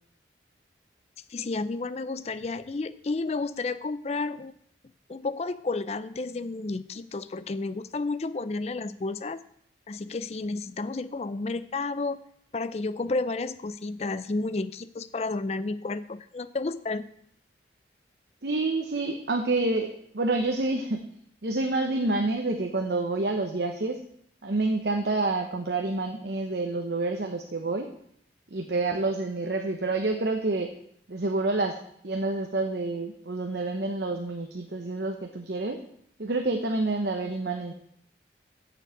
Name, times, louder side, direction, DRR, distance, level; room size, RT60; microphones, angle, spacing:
voice 1, 1.3-4.5 5.1-9.4 9.9-12.2 12.5-17.1, left 3 dB, 35° left, 13 dB, 0.4 m, -31 dB
voice 2, 18.4-21.1 21.4-24.0 24.4-27.9 28.5-30.7 31.1-31.8 32.0-35.8 36.2-37.7, right 2 dB, 60° right, 4 dB, 0.9 m, -28 dB
7.2 x 7.1 x 7.9 m, 0.67 s
head